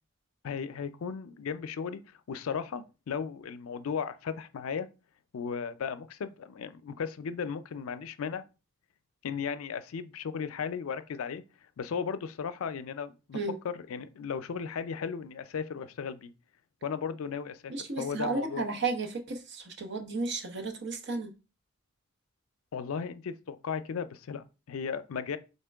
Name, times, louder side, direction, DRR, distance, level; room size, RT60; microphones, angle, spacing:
voice 1, 0.4-2.0 2.3-4.9 5.3-8.4 9.2-11.4 11.8-13.4 13.6-16.3 16.8-18.7 22.7-25.4, left 6 dB, 85° left, 0.4 m, -36 dB
voice 2, 17.7-21.3, right 3 dB, 55° right, 0.9 m, -33 dB
4.3 x 3.6 x 3.4 m
head